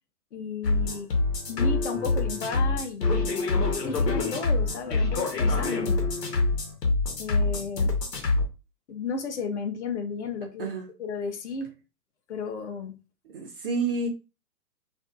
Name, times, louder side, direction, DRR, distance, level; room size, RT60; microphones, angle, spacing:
voice 1, 0.3-1.1 1.5-3.4 3.7-6.0 7.2-7.9 8.9-10.7 11.0-11.7 12.3-12.9, left 5 dB, 50° left, 0.5 m, -33 dB
sound 1, 0.6-8.5, left 3 dB, 80° left, 1.0 m, -25 dB
voice 2, 13.2-14.1, right 3 dB, 40° right, 0.4 m, -29 dB
2.5 x 2.4 x 2.4 m
hypercardioid pair, 125°, 48 cm